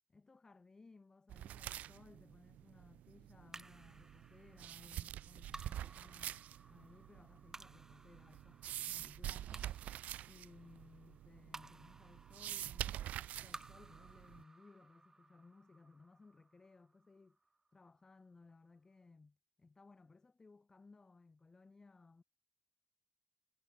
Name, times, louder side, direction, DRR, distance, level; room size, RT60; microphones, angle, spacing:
voice 1, 0.1-6.4 6.7-9.9 10.2-17.4 17.7-22.2, left 3 dB, 25° left, 5.3 m, -62 dB
sound 1, 1.3-14.4, right 12 dB, 80° right, 1.1 m, -47 dB
sound 2, 3.5-18.0, right 3 dB, 20° right, 5.3 m, -58 dB
cardioid pair, 95°, 3 cm